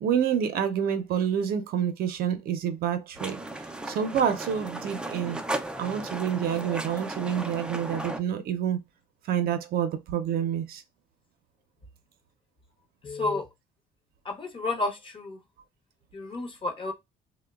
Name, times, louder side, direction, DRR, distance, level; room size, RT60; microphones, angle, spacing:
voice 1, 0.0-3.4 3.9-5.4 5.8-8.8 9.3-10.8, right 8 dB, 65° right, 0.6 m, -28 dB
sound 1, 3.2-8.2, right 2 dB, 5° right, 0.3 m, -35 dB
voice 2, 13.0-13.5 14.2-15.4 16.1-16.9, left 2 dB, 30° left, 0.7 m, -31 dB
2.8 x 2.1 x 2.3 m
cardioid pair, 110°, 17 cm